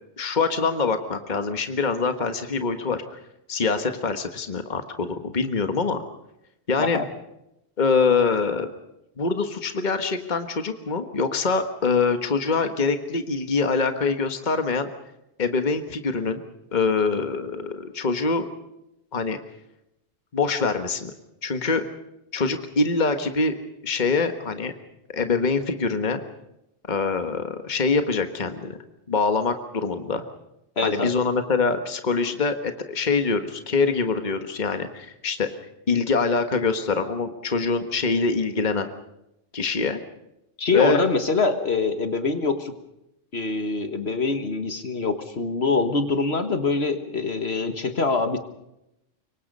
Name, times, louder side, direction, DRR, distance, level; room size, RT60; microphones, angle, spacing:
voice 1, 0.2-3.0 3.5-6.0 6.7-7.0 7.8-8.7 9.2-14.9 15.4-16.4 16.7-18.5 19.1-19.4 20.3-21.1 21.4-21.8 22.3-23.5 23.8-24.7 25.1-26.2 26.9-28.8 29.1-30.2 30.8-35.5 35.9-38.9 39.5-40.0 40.7-41.0, left 4 dB, 40° left, 8 dB, 1.6 m, -24 dB
voice 2, 30.8-31.1 40.6-42.7 43.3-48.4, left 4 dB, 60° left, 8 dB, 1.7 m, -24 dB
26.0 x 23.5 x 5.4 m, 0.87 s
omnidirectional pair, 1.2 m